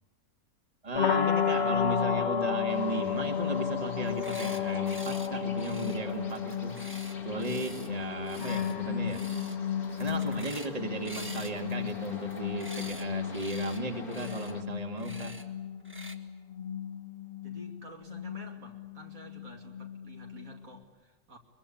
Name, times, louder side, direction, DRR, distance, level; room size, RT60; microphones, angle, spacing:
voice 1, 0.8-6.8 7.2-9.2 10.0-15.3, right 2 dB, 25° right, 3 dB, 2.1 m, -36 dB
sound 1, 0.9-20.8, left 8 dB, 45° left, 1.7 m, -33 dB
sound 2, 2.7-14.6, left 3 dB, 75° left, 2.8 m, -48 dB
sound 3, 4.0-4.6 4.9-5.3 5.6-7.9 8.2-8.7 9.1-9.6 9.8-10.7 11.0-13.0 13.3-13.8 14.1-14.5 15.0-15.4 15.8-16.2, right 1 dB, 10° right, 1.5 m, -47 dB
voice 2, 17.4-21.4, right 1 dB, 65° right, 2 dB, 3.1 m, -51 dB
22.5 x 22.5 x 8.6 m, 1.2 s
omnidirectional pair, 1.6 m